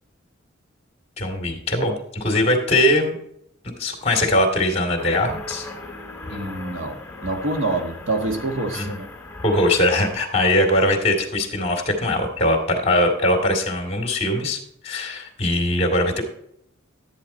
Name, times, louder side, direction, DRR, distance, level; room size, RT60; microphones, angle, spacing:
voice 1, 1.2-3.1 3.8-5.7 8.7-9.0 9.4-16.2, left 1 dB, 30° left, 3 dB, 2.2 m, -21 dB
sound 1, 5.0-10.1, left 2 dB, 15° left, 2.3 m, -37 dB
voice 2, 6.3-9.1, right 2 dB, 75° right, 4 dB, 1.5 m, -26 dB
13.0 x 9.1 x 4.3 m, 0.74 s
head